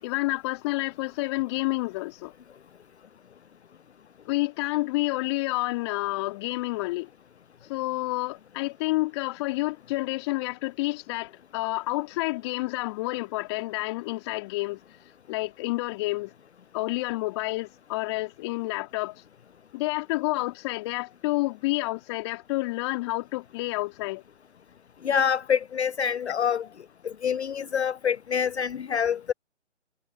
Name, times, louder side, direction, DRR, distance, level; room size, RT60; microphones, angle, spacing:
voice 1, 0.0-2.3 4.3-7.1 7.7-14.8 15.3-16.3 16.7-19.1 19.7-24.2, left 21 dB, 20° left, 3.6 m, -29 dB
voice 2, 25.0-26.7 27.0-29.3, left 7 dB, 65° left, 0.6 m, -26 dB
figure-of-eight pair, 145°, 36 cm